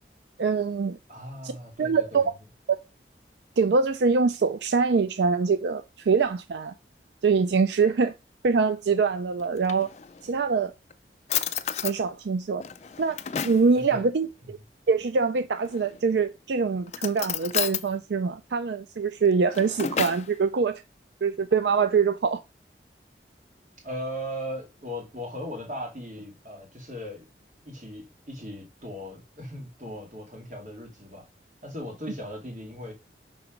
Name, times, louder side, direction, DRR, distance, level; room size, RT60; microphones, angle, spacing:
voice 1, 0.4-1.0 1.4-1.5 1.8-2.3 3.6-6.7 7.2-8.1 8.4-9.9 10.2-10.7 11.8-12.6 13.0-13.2 13.4-14.6 14.9-20.8 21.2-22.4, right 5 dB, 75° right, 0.4 m, -24 dB
voice 2, 1.1-2.3 13.8-14.1 14.4-14.5 23.8-27.3 27.7-31.3 31.6-32.9, equal, 45° right, 2.4 m, -38 dB
Drawer open or close, 9.4-10.4 10.9-11.0 11.3-12.0 12.6-13.7 15.6-16.1 16.9-17.9 19.3-20.3, left 9 dB, 40° left, 0.4 m, -31 dB
5.9 x 3.9 x 5.1 m
head